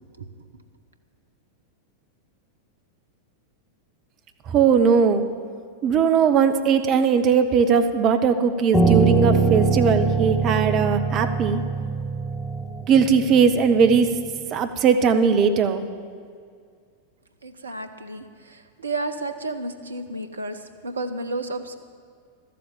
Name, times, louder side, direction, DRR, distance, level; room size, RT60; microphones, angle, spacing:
voice 1, 4.5-5.2 5.8-11.6 12.9-14.1 14.5-15.8, right 6 dB, 35° right, 8 dB, 1.0 m, -19 dB
Piano, 8.7-14.0, right 4 dB, 5° right, 1.4 m, -22 dB
voice 2, 17.4-20.6 20.8-21.8, right 2 dB, 75° right, 9 dB, 0.9 m, -31 dB
13.0 x 7.7 x 8.7 m, 2.2 s
figure-of-eight pair, 90°, 0 cm